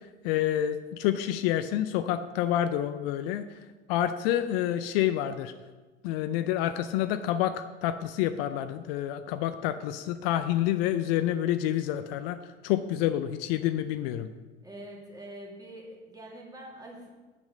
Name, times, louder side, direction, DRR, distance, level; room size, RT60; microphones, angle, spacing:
voice 1, 0.2-3.4 3.9-5.5 6.0-12.4 12.6-14.3, left 12 dB, 60° left, 10 dB, 0.6 m, -28 dB
voice 2, 14.6-17.1, right 1 dB, 10° right, -2 dB, 2.4 m, -44 dB
7.2 x 6.1 x 6.6 m, 1.3 s
hypercardioid pair, 80°, 34 cm